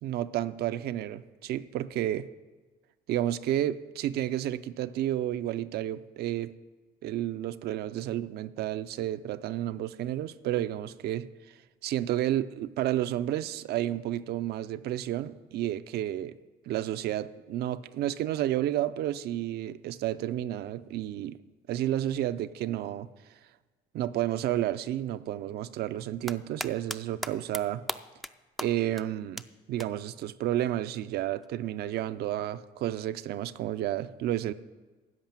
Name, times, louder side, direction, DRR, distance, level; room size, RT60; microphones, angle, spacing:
voice 1, 0.0-2.3 3.1-6.5 7.0-11.3 11.8-16.4 16.7-21.4 21.7-23.1 23.9-27.8 28.6-29.4 29.7-34.5, right 12 dB, 70° right, 0.5 m, -31 dB
sound 1, 26.0-27.0 27.2-27.6 27.9-28.3 28.6-28.7 29.0-29.1 29.4-29.5 29.8-29.9 31.4-31.5, equal, ahead, 0.4 m, -35 dB
13.5 x 5.5 x 8.9 m
cardioid pair, 110°, 17 cm